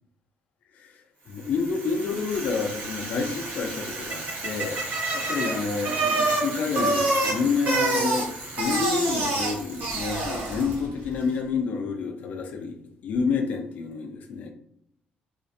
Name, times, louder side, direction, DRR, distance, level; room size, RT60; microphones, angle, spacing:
voice 1, 1.3-4.8 5.1-8.3 8.6-12.8 13.0-14.5, left 5 dB, 55° left, 4 dB, 0.4 m, -28 dB
Bicycle, 1.4-10.9, right 2 dB, 60° right, 0.9 m, -28 dB
2.4 x 2.1 x 2.5 m, 0.72 s
cardioid pair, 160°, 3 cm